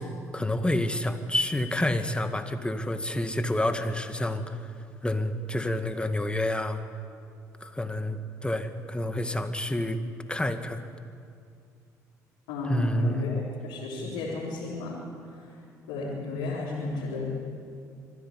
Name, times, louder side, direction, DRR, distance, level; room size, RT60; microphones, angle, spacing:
voice 1, 0.3-4.7 5.0-6.8 7.6-10.0 10.3-10.8 12.6-13.2, left 1 dB, 10° left, 8 dB, 1.9 m, -28 dB
voice 2, 12.5-13.3 13.6-15.0 15.9-17.3, left 3 dB, 85° left, -7 dB, 3.9 m, -33 dB
25.5 x 10.5 x 9.8 m, 2.4 s
hypercardioid pair, 60°, 8 cm